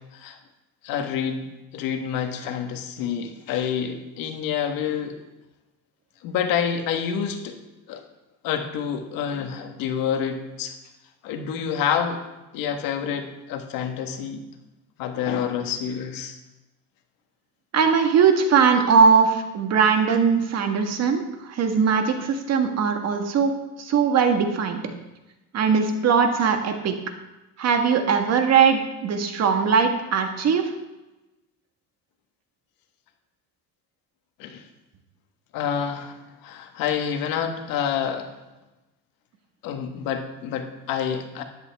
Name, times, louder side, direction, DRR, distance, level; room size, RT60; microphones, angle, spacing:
voice 1, 0.8-5.1 6.2-7.6 7.9-8.0 8.4-10.7 11.2-12.2 12.5-14.4 15.0-16.4 34.4-34.7 35.5-38.3 39.6-41.4, left 8 dB, 80° left, 5 dB, 1.5 m, -28 dB
voice 2, 17.7-23.5 23.8-24.8 25.5-26.9 27.6-30.7, right 6 dB, 50° right, 5 dB, 1.6 m, -20 dB
13.5 x 10.5 x 3.5 m, 1.0 s
cardioid pair, 140°, 34 cm